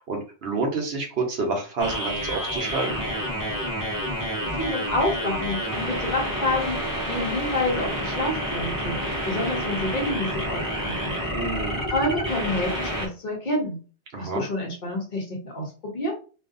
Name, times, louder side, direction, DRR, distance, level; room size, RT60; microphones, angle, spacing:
voice 1, 0.0-3.0 11.3-11.8 14.1-14.4, right 3 dB, 60° right, 2 dB, 0.9 m, -28 dB
sound 1, 1.8-13.1, equal, 20° right, 0.6 m, -29 dB
voice 2, 4.4-9.0 9.2-11.2 11.9-13.8 14.2-16.1, left 1 dB, 45° left, -2 dB, 0.9 m, -28 dB
2.6 x 2.4 x 2.4 m, 0.36 s
omnidirectional pair, 1.2 m